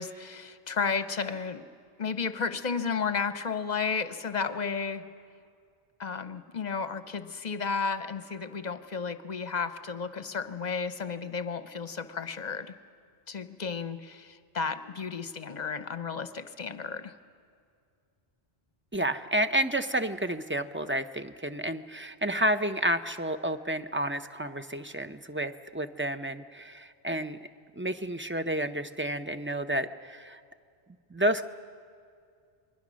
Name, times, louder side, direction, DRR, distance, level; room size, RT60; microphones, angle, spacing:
voice 1, 0.0-1.6 2.0-5.0 6.0-12.7 13.3-17.1, left 5 dB, 45° left, 10 dB, 0.9 m, -33 dB
voice 2, 18.9-27.4 27.8-30.4 31.1-31.5, right 1 dB, 15° right, 9 dB, 0.6 m, -30 dB
27.5 x 21.5 x 6.3 m, 2.3 s
omnidirectional pair, 1.1 m